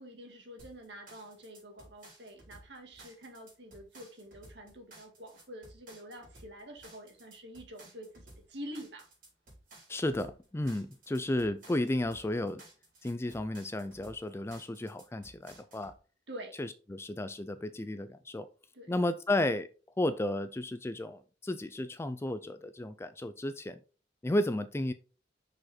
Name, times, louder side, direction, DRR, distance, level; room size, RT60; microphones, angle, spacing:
voice 1, 0.0-9.1 16.3-16.5 18.7-18.9, equal, 65° right, 1.9 m, -47 dB
sound 1, 0.6-16.0, right 2 dB, 45° right, 4.0 m, -56 dB
voice 2, 9.9-12.6 13.0-15.9 16.6-18.5 18.9-19.7 20.0-23.8 24.2-24.9, left 1 dB, 15° left, 0.3 m, -33 dB
6.2 x 5.0 x 4.2 m
head